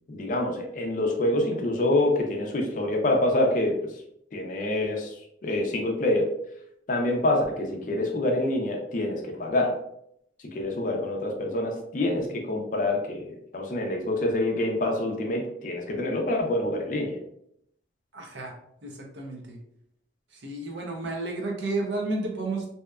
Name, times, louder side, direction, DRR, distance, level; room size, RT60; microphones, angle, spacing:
voice 1, 0.1-3.8 4.3-5.2 5.4-6.3 6.9-9.8 10.4-17.2, left 1 dB, 45° left, 2 dB, 0.4 m, -26 dB
voice 2, 18.1-18.5 18.8-19.6 20.3-22.7, right 2 dB, 70° right, 1 dB, 0.6 m, -32 dB
2.7 x 2.2 x 2.3 m, 0.73 s
head